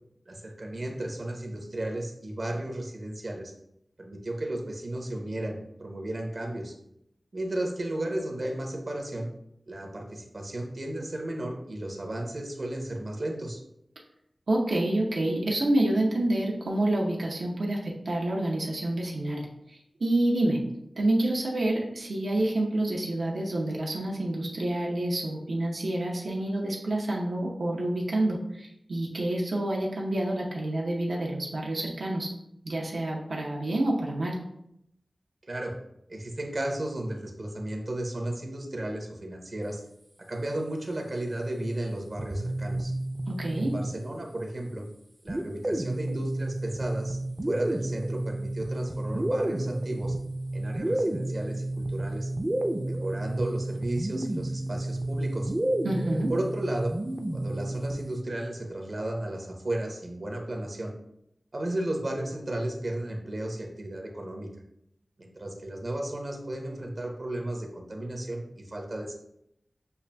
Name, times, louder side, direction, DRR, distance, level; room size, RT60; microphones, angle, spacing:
voice 1, 0.3-3.5 4.0-6.7 7.3-9.3 9.7-13.6 35.5-35.8 36.1-39.8 40.3-42.9 43.6-44.8 45.2-47.2 47.5-50.2 50.5-52.3 52.8-55.5 56.3-56.9 57.3-60.9 61.5-64.5 65.2-69.1, right 1 dB, 55° right, 1 dB, 0.7 m, -34 dB
voice 2, 14.5-19.5 20.0-20.6 21.0-32.3 32.6-34.4 43.3-43.7 55.8-56.3, right 1 dB, 90° right, -2 dB, 0.7 m, -28 dB
sound 1, 42.2-44.3 45.3-58.2, right 1 dB, 25° right, 0.4 m, -31 dB
6.6 x 2.4 x 2.2 m, 0.78 s
wide cardioid pair, 85°, 0 cm